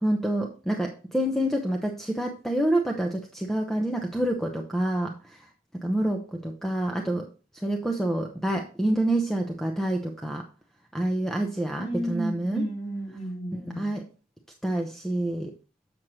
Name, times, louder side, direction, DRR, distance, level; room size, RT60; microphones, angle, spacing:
voice 1, 0.0-5.4 5.8-7.2 7.6-10.4 10.9-12.6 13.7-14.0 14.6-15.5, right 1 dB, ahead, 3 dB, 0.6 m, -27 dB
voice 2, 11.7-13.9, right 1 dB, 30° left, -1 dB, 2.6 m, -32 dB
7.4 x 6.3 x 3.0 m, 0.36 s
head